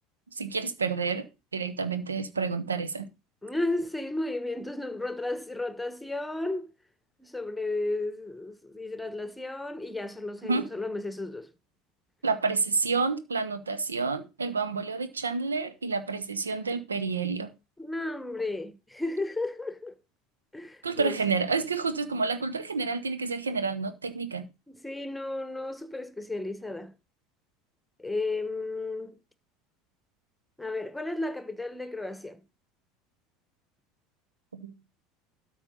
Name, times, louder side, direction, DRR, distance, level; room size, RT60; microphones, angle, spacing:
voice 1, 0.4-1.3 1.5-3.1 10.5-10.7 12.2-17.5 20.8-24.5 34.5-34.7, right 4 dB, 80° right, 1.1 m, -29 dB
voice 2, 3.4-6.7 7.2-11.5 17.8-20.0 20.5-21.2 24.7-26.9 28.0-29.1 30.6-32.4, left 2 dB, 5° left, 1.3 m, -33 dB
12.5 x 4.6 x 5.4 m
figure-of-eight pair, 70°, 0 cm